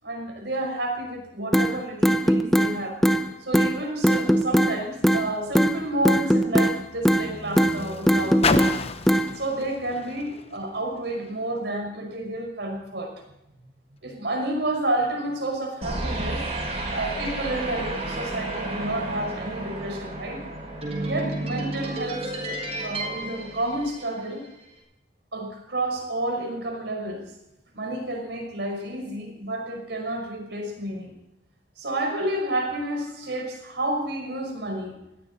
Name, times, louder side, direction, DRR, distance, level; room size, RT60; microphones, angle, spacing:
voice 1, 0.0-3.0 3.4-8.8 9.3-13.1 14.0-16.4 16.9-20.4 21.0-24.5 25.3-27.3 27.7-31.1 31.8-34.9, right 1 dB, 75° right, 2 dB, 5.5 m, -30 dB
sound 1, 1.5-1.7 2.0-2.7 3.0-3.2 3.5-3.7 4.0-4.7 5.0-5.2 5.5-5.7 6.0-6.7 7.0-7.2 7.6-7.7 8.1-8.7 9.1-9.3, equal, ahead, 0.9 m, -19 dB
Car, 4.8-11.4 12.2-12.3, left 4 dB, 35° left, 0.9 m, -33 dB
sound 2, 15.8-24.4, right 2 dB, 35° right, 6.0 m, -31 dB
20.5 x 16.0 x 4.2 m, 0.90 s
head